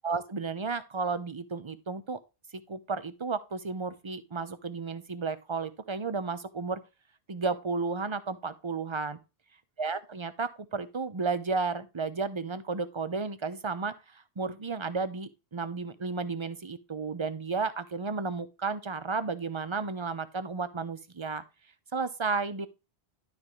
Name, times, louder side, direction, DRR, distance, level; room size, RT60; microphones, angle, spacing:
voice 1, 0.0-2.2 2.5-6.8 7.3-9.2 9.8-21.4 21.9-22.7, right 4 dB, 30° right, 0.8 m, -33 dB
12.5 x 5.2 x 3.2 m
omnidirectional pair, 1.1 m